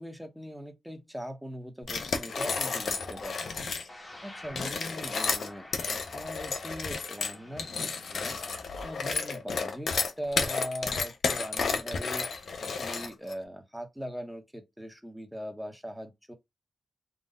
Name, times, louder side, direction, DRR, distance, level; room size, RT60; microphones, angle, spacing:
voice 1, 0.0-3.7 3.9-8.4 8.8-16.3, equal, 5° right, 1.0 m, -41 dB
sound 1, 1.8-3.9 4.5-13.3, left 4 dB, 70° left, 0.8 m, -32 dB
sound 2, 2.4-10.3, left 1 dB, 25° left, 1.1 m, -51 dB
4.0 x 2.4 x 3.8 m
wide cardioid pair, 125°, 0 cm